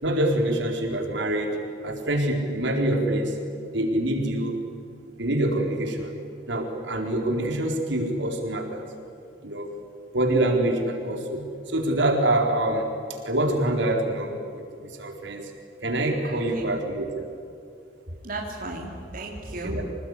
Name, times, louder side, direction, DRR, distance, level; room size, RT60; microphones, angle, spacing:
voice 1, 0.0-3.4 3.7-4.6 5.2-6.1 6.5-8.9 9.4-9.7 10.1-12.9 13.2-15.5 15.8-17.2 19.6-19.8, right 1 dB, 70° right, 2 dB, 4.3 m, -25 dB
voice 2, 16.2-16.8 18.2-19.8, right 2 dB, 45° right, -1 dB, 3.4 m, -35 dB
26.5 x 20.0 x 9.9 m, 2.6 s
head